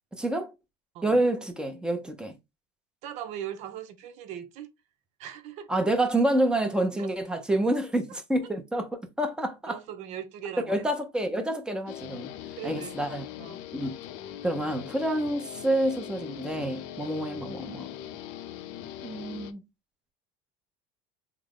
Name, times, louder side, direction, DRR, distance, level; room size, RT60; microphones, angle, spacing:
voice 1, 0.1-0.5 1.0-2.4 5.7-9.8 10.7-12.3 12.6-13.3 13.7-14.0 14.4-17.9 19.0-19.6, right 1 dB, 5° right, 0.8 m, -28 dB
voice 2, 3.0-4.7 5.2-5.7 7.0-7.1 9.7-10.8 12.6-13.0 13.4-13.6, right 10 dB, 60° right, 0.6 m, -39 dB
Guitar, 11.9-19.5, left 11 dB, 75° left, 0.5 m, -41 dB
3.4 x 2.1 x 3.7 m
supercardioid pair, 100°, 13 cm